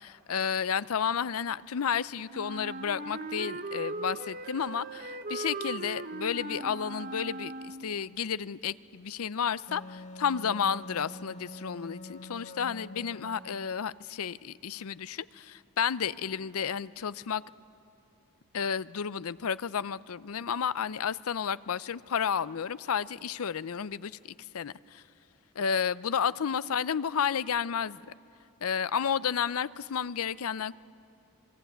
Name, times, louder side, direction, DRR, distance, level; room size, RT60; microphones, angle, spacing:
voice 1, 0.0-17.4 18.5-25.0 25.6-28.1 28.6-30.8, left 7 dB, 75° left, 18 dB, 0.5 m, -32 dB
Wind instrument woodwind instrument, 2.3-8.1, right 2 dB, 40° right, 0.9 m, -39 dB
Wind instrument woodwind instrument 2, 9.7-13.8, left 1 dB, 30° left, 0.9 m, -45 dB
27.0 x 21.5 x 9.2 m, 2.5 s
head